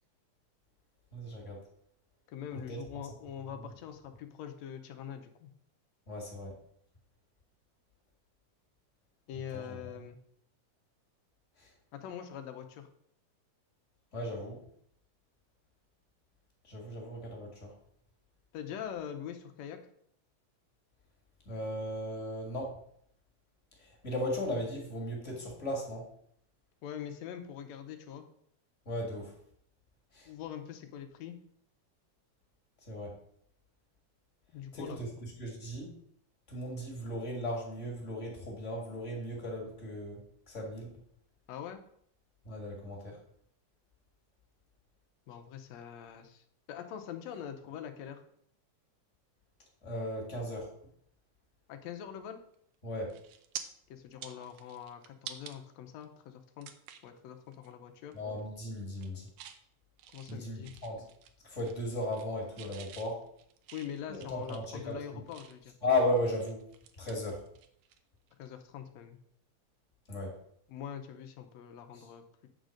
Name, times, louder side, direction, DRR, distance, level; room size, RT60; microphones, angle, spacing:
voice 1, 1.1-1.6 2.5-2.8 3.6-3.7 6.1-6.5 9.5-9.9 11.6-11.7 14.1-14.6 16.6-17.7 21.4-22.8 23.8-26.1 28.8-29.3 30.1-30.3 32.9-33.2 34.7-35.9 36.5-40.9 42.4-43.2 49.8-50.7 52.8-53.1 58.1-59.3 60.3-61.0 61.4-63.2 64.1-65.2 65.8-66.7 67.0-67.4 70.1-70.4 71.9-72.0, left 1 dB, 30° left, 0 dB, 1.5 m, -36 dB
voice 2, 2.3-5.5 9.3-10.2 11.9-12.9 18.5-19.8 26.8-28.2 30.2-31.4 34.5-35.0 41.5-41.8 45.3-48.2 51.7-52.4 53.9-56.7 57.0-58.1 60.1-60.7 63.7-65.7 68.4-69.2 70.7-72.2, left 9 dB, 75° left, 6 dB, 1.7 m, -43 dB
sound 1, 52.5-52.8 53.1-53.6 54.1-55.6 56.0-56.1 56.6-57.1 57.5-57.7 58.0-58.5 58.8-59.6 60.0-61.3 61.6-62.3 62.6-65.7 66.2-68.0 68.3-68.5 70.4-70.5, right 10 dB, 75° right, 1.8 m, -48 dB
9.0 x 3.9 x 6.3 m, 0.68 s
omnidirectional pair, 3.8 m